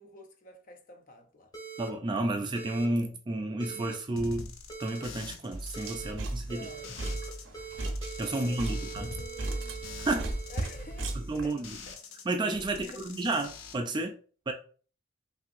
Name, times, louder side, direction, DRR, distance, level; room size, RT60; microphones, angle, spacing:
voice 1, 0.0-1.5 6.4-7.2 8.3-9.8 10.5-11.5 11.9-12.0 12.8-13.0, left 1 dB, 40° left, 0.6 m, -50 dB
sound 1, 1.5-1.9 2.5-2.8 3.6-3.9 4.7-5.0 5.7-6.1 6.5-7.3 7.5-11.3, right 6 dB, 20° left, 1.3 m, -43 dB
voice 2, 1.8-4.5 4.8-6.7 8.2-9.1 10.0-10.4 11.3-11.8 12.3-14.2 14.5-14.6, right 2 dB, 20° right, 0.3 m, -31 dB
sound 2, 4.2-7.4 7.7-12.2 12.5-13.7, left 3 dB, 80° left, 0.7 m, -44 dB
sound 3, 5.5-11.5, right 2 dB, 65° right, 0.7 m, -36 dB
5.7 x 2.7 x 2.5 m
head